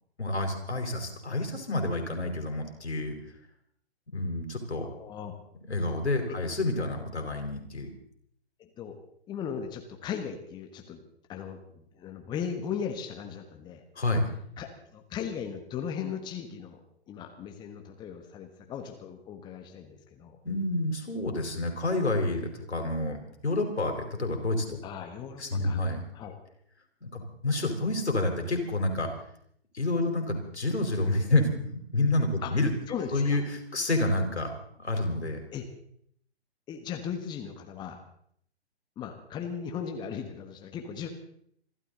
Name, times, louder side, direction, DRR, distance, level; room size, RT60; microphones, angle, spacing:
voice 1, 0.2-3.2 4.1-4.9 5.7-7.9 14.0-14.3 20.4-24.8 25.4-26.0 27.0-29.1 29.7-32.7 33.1-33.4 33.7-35.4, left 2 dB, 80° left, 4 dB, 4.4 m, -29 dB
voice 2, 4.8-5.4 8.6-9.0 9.3-11.0 11.3-13.8 14.6-16.8 17.1-20.4 24.8-25.8 26.1-26.4 32.4-32.5 32.9-33.4 35.5-35.6 36.7-38.0 39.0-41.1, left 7 dB, 15° left, 4 dB, 1.4 m, -37 dB
27.0 x 12.5 x 3.9 m, 0.68 s
figure-of-eight pair, 130°, 33 cm